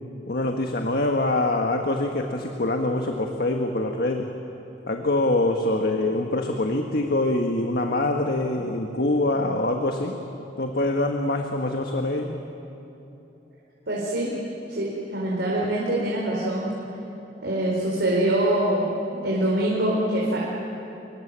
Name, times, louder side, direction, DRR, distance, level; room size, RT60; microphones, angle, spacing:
voice 1, 0.3-4.3 4.9-10.2 10.6-12.4, left 2 dB, 60° left, 3 dB, 1.5 m, -24 dB
voice 2, 13.9-14.3 14.7-16.7 17.4-20.4, right 1 dB, 70° right, -5 dB, 4.4 m, -24 dB
26.0 x 23.5 x 7.5 m, 3.0 s
head